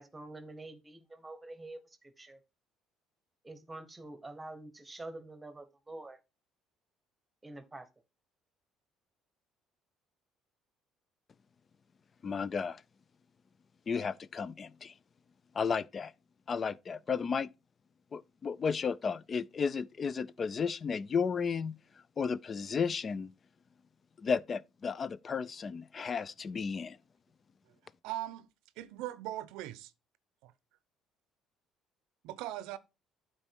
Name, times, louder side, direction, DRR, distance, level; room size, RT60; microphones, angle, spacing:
voice 1, 0.0-2.4 3.4-6.2 7.4-7.9, right 2 dB, 15° right, 1.1 m, -47 dB
voice 2, 12.2-12.8 13.9-14.9 15.5-16.1 16.5-17.5 18.1-21.8 22.2-23.3 24.2-27.0, left 6 dB, 35° left, 0.3 m, -33 dB
voice 3, 28.0-28.5 28.8-29.9 30.4-30.5 32.2-32.8, right 15 dB, 85° right, 0.6 m, -39 dB
8.8 x 4.3 x 4.5 m
cardioid pair, 105°, 0 cm